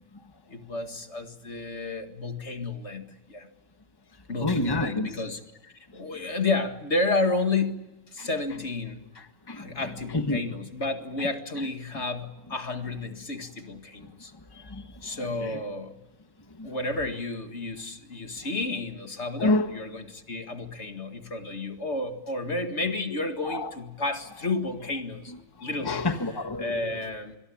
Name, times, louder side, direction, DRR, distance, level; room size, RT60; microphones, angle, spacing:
voice 1, 0.5-3.5 4.3-9.0 9.5-14.3 15.0-16.0 16.6-25.3 25.6-26.0 26.6-27.4, left 3 dB, 55° left, 2.2 m, -31 dB
voice 2, 4.4-5.1 8.2-8.3 9.2-10.4 11.2-11.3 14.0-14.1 14.5-15.6 16.6-16.7 19.4-19.7 23.4-23.7 25.6-27.0, left 2 dB, 20° left, 1.5 m, -29 dB
26.5 x 22.0 x 8.7 m
omnidirectional pair, 1.4 m